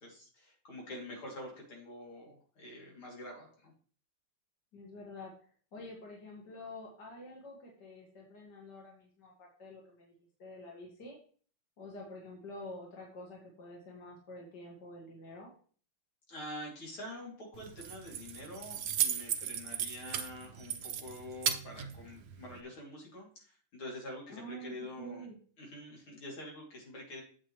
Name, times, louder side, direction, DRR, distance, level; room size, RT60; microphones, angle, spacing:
voice 1, 0.0-3.7 16.3-25.3 25.6-27.2, left 1 dB, 70° left, -2 dB, 3.8 m, -46 dB
voice 2, 4.7-5.3 5.7-10.1 10.4-11.2 11.8-15.5 24.3-25.4, left 1 dB, 50° left, -2 dB, 2.7 m, -48 dB
Keys jangling, 17.6-22.6, right 9 dB, 65° right, 0.9 m, -36 dB
8.4 x 8.3 x 3.2 m, 0.43 s
omnidirectional pair, 2.4 m